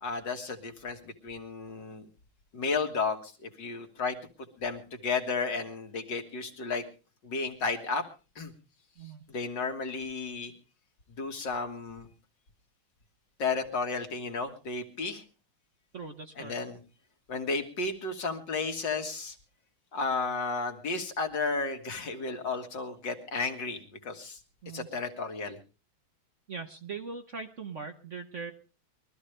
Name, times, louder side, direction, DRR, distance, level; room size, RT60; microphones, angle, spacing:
voice 1, 0.0-2.0 2.5-4.2 4.6-6.8 7.2-8.1 8.4-8.5 9.3-10.5 11.2-12.1 13.4-15.2 16.4-16.8 17.3-19.4 19.9-24.4 24.7-25.6, left 4 dB, 60° left, 4 dB, 2.6 m, -33 dB
voice 2, 9.0-9.3 15.9-16.6 24.6-24.9 26.5-28.5, right 4 dB, 45° right, 6 dB, 1.2 m, -40 dB
23.0 x 13.5 x 3.3 m, 0.33 s
omnidirectional pair, 2.2 m